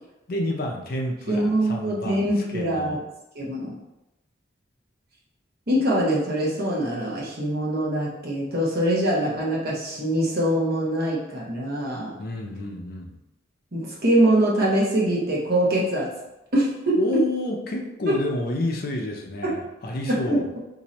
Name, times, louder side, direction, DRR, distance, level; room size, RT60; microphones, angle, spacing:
voice 1, 0.3-3.0 12.2-13.2 17.0-20.5, left 1 dB, 50° left, 1 dB, 0.5 m, -29 dB
voice 2, 1.3-3.0 3.3-3.8 5.7-12.1 13.7-16.1 16.5-17.3 18.1-18.2 19.4-19.6 20.1-20.4, right 1 dB, 50° right, -5 dB, 1.0 m, -23 dB
2.9 x 2.6 x 4.0 m, 0.95 s
head